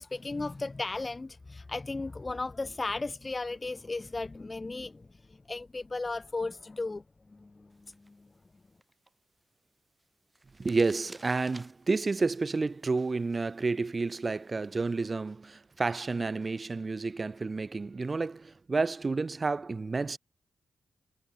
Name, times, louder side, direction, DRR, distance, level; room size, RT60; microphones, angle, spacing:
voice 1, 0.0-7.0 7.3-8.3, left 3 dB, 30° left, 0.8 m, -36 dB
sound 1, 7.7-15.1, right 2 dB, 20° right, 4.9 m, -58 dB
voice 2, 10.6-20.2, right 3 dB, 40° right, 0.4 m, -30 dB
cardioid pair, 55°, 0 cm